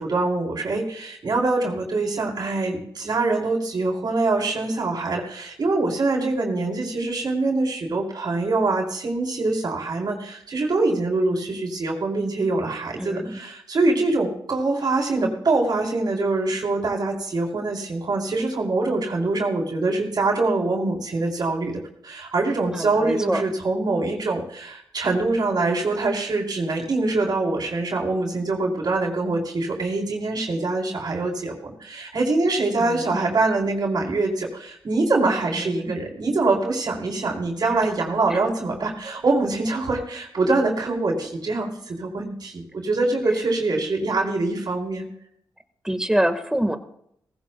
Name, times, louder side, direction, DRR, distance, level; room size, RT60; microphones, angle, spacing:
voice 1, 0.0-45.1, right 3 dB, 60° right, 0 dB, 4.1 m, -24 dB
voice 2, 13.0-13.4 22.7-23.5 32.8-33.2 35.6-36.0 37.6-37.8 38.3-38.4 45.8-46.8, right 1 dB, 5° right, 8 dB, 1.7 m, -26 dB
18.5 x 15.5 x 2.3 m, 0.72 s
supercardioid pair, 50°, 8 cm